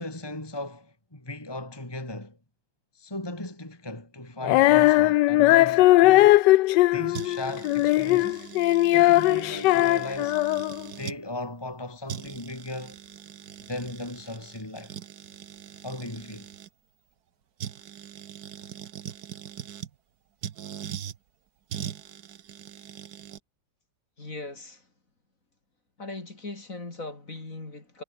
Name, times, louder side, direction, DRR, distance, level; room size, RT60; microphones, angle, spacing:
voice 1, 0.0-2.4 2.9-6.4 6.9-8.6 8.9-10.4 11.0-13.0 13.6-15.0 15.8-16.5, left 2 dB, 10° left, 2.9 m, -37 dB
Female singing, 4.4-10.9, left 17 dB, 75° left, 1.1 m, -19 dB
sound 1, 7.1-11.2 11.7-11.8 12.1-16.7 17.6-19.9 20.4-21.2 21.7-23.4, right 9 dB, 55° right, 1.4 m, -41 dB
voice 2, 24.2-24.9 26.0-28.0, left 2 dB, 40° left, 4.4 m, -39 dB
omnidirectional pair, 2.2 m